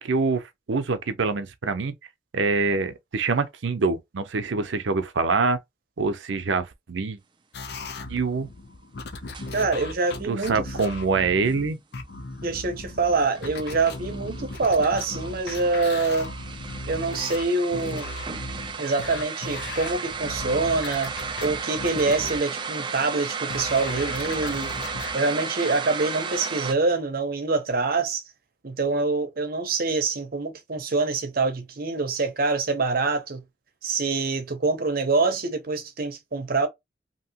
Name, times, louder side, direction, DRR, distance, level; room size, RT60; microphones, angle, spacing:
voice 1, 0.0-1.9 2.3-5.6 6.0-7.2 8.1-8.5 10.2-11.8, right 4 dB, 90° right, 0.6 m, -25 dB
sound 1, 7.5-23.1 23.5-25.1, left 2 dB, 60° left, 0.6 m, -37 dB
sound 2, 9.3-9.5 13.1-26.7, right 5 dB, 25° right, 0.4 m, -34 dB
voice 2, 9.5-10.6 12.4-16.3 16.9-18.1 18.8-21.1 21.4-24.7 25.1-28.2 28.6-33.4 33.8-36.7, right 3 dB, 55° right, 0.8 m, -25 dB
2.8 x 2.8 x 2.8 m
head